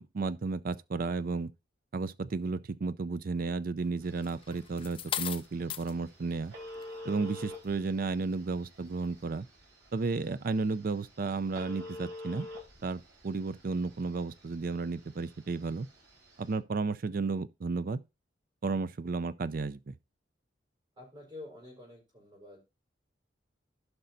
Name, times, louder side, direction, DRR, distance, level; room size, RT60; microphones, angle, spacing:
voice 1, 0.0-1.5 1.9-6.5 7.0-9.5 9.9-12.5 12.8-15.9 16.4-18.0 18.6-19.9, right 4 dB, 50° right, 0.4 m, -33 dB
Telephone, 4.0-16.5, left 1 dB, 85° right, 4.3 m, -48 dB
sound 1, 4.2-5.9 6.7-6.9, left 9 dB, 30° left, 0.4 m, -36 dB
voice 2, 21.0-22.6, left 2 dB, 25° right, 4.1 m, -48 dB
16.0 x 5.4 x 2.6 m
head